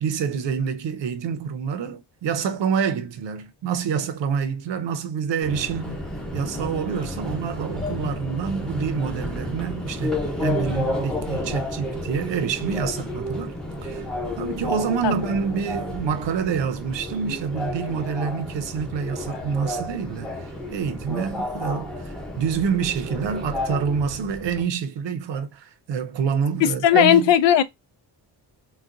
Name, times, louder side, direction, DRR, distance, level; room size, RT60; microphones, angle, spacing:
voice 1, 0.0-6.0 6.3-13.5 13.8-14.1 14.4-27.3, right 6 dB, 85° right, 0.8 m, -27 dB
Subway metro underground, 5.4-24.7, left 1 dB, ahead, 0.7 m, -31 dB
voice 2, 26.6-27.6, left 10 dB, 85° left, 0.6 m, -17 dB
4.0 x 2.3 x 2.5 m
wide cardioid pair, 145°, 42 cm